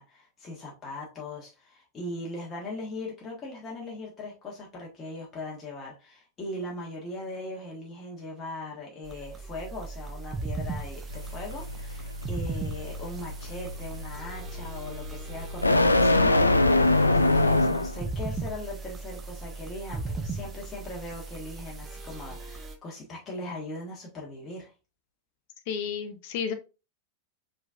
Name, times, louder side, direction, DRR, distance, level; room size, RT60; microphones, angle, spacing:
voice 1, 0.0-24.7, left 2 dB, 25° left, 1.5 m, -39 dB
sound 1, 9.0-22.8, right 3 dB, 20° right, 0.8 m, -38 dB
sound 2, 11.1-18.1, left 2 dB, 80° left, 0.4 m, -24 dB
voice 2, 25.7-26.5, left 7 dB, 50° left, 0.8 m, -31 dB
4.9 x 3.9 x 2.5 m
figure-of-eight pair, 90°, 0 cm